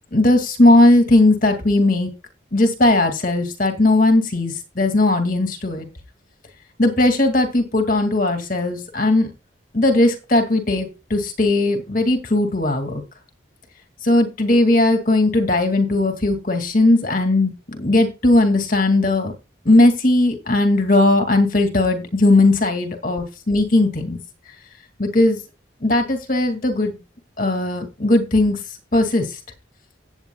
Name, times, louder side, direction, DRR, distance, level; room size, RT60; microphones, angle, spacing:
voice 1, 0.1-2.1 2.5-5.9 6.8-9.3 9.7-13.0 14.0-19.3 19.7-24.2 25.0-25.4 25.8-27.0 27.4-28.6 28.9-29.3, left 2 dB, 45° left, 5 dB, 2.2 m, -17 dB
16.0 x 8.8 x 2.3 m, 0.27 s
head